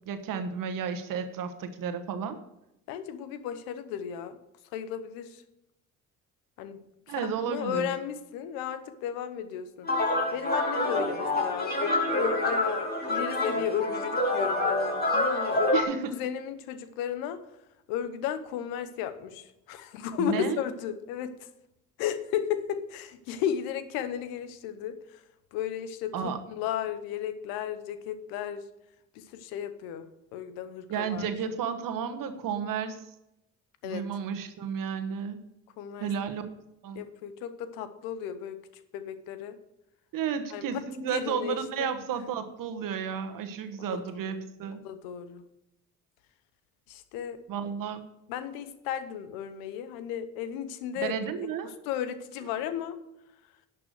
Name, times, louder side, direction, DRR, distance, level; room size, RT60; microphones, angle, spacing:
voice 1, 0.1-2.4 7.1-7.9 15.7-16.1 20.2-20.6 26.1-26.4 30.9-33.0 33.8-35.4 36.0-36.4 36.8-37.0 40.1-44.8 47.5-48.0 51.0-51.7, right 7 dB, 70° right, 9 dB, 1.2 m, -32 dB
voice 2, 2.9-4.4 4.7-5.4 6.6-6.8 7.1-9.9 10.3-11.7 12.1-15.7 16.1-17.4 17.9-21.5 22.0-25.2 25.5-28.6 29.1-31.3 33.8-34.0 35.8-36.1 36.9-38.6 38.9-39.6 40.5-40.6 41.1-42.0 44.2-44.3 44.8-45.4 46.9-47.4 48.3-51.5 51.8-53.0, left 9 dB, 85° left, 12 dB, 0.9 m, -34 dB
sound 1, 9.8-15.8, left 2 dB, 25° left, 3.3 m, -27 dB
11.0 x 5.9 x 6.4 m, 0.88 s
hypercardioid pair, 55°, 35 cm